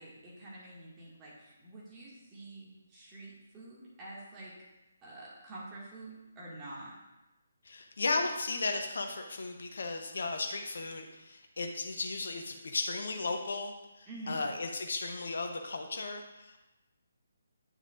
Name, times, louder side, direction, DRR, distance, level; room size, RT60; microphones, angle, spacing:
voice 1, 0.0-4.5 5.0-7.0 14.1-14.4, right 2 dB, 20° right, -6 dB, 2.1 m, -47 dB
voice 2, 7.6-16.6, left 3 dB, 55° left, 4 dB, 0.8 m, -35 dB
9.2 x 6.4 x 2.6 m, 0.99 s
figure-of-eight pair, 140°, 0 cm